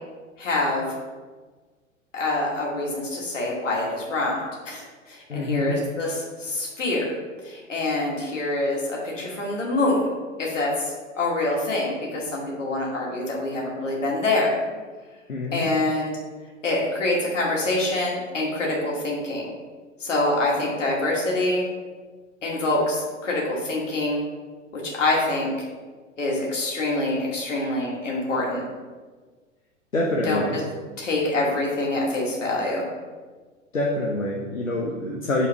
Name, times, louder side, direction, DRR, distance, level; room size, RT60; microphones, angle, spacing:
voice 1, 0.4-0.9 2.1-7.2 7.4-10.1 10.4-14.5 15.5-16.2 16.6-19.5 20.0-21.6 22.4-24.2 24.7-25.5 26.2-28.6 30.2-30.4 31.0-32.9, left 2 dB, 70° left, -3 dB, 2.3 m, -25 dB
voice 2, 5.3-5.8 15.3-15.7 29.9-30.6 33.7-35.5, left 1 dB, 85° left, -3 dB, 1.0 m, -26 dB
5.5 x 4.6 x 6.1 m, 1.4 s
figure-of-eight pair, 95°, 39 cm